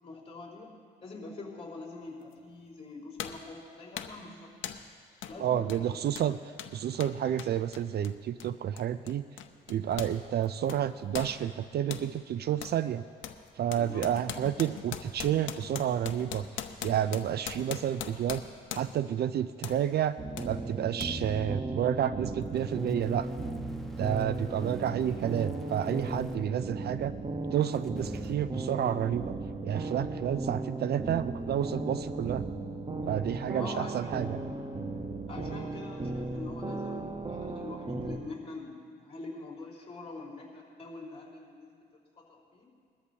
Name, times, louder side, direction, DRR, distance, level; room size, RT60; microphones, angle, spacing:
voice 1, 0.0-0.7 1.0-4.5 5.3-5.9 13.7-14.1 33.5-34.1 35.3-41.7 42.3-42.7, left 3 dB, 30° left, -4 dB, 4.2 m, -44 dB
sound 1, 2.3-2.4 3.2-3.5 4.0-4.2 4.6-4.9 5.2-5.4 5.7-10.2 10.4-12.1 12.6-12.8 13.2-19.1 19.6-19.8 20.4-20.5 21.0-21.1, left 9 dB, 75° left, 0.7 m, -41 dB
voice 2, 5.4-6.4 6.7-9.3 9.7-13.0 13.6-16.5 16.8-18.4 18.7-20.2 20.4-23.3 24.0-27.1 27.5-29.3 29.6-32.4 33.1-34.4, right 10 dB, 55° right, 14 dB, 0.4 m, -30 dB
sound 2, 20.2-38.2, right 2 dB, 25° right, 1.0 m, -36 dB
sound 3, 22.4-26.4 27.7-28.3, left 1 dB, ahead, 1.1 m, -51 dB
21.0 x 13.5 x 2.8 m, 2.1 s
cardioid pair, 90°, 20 cm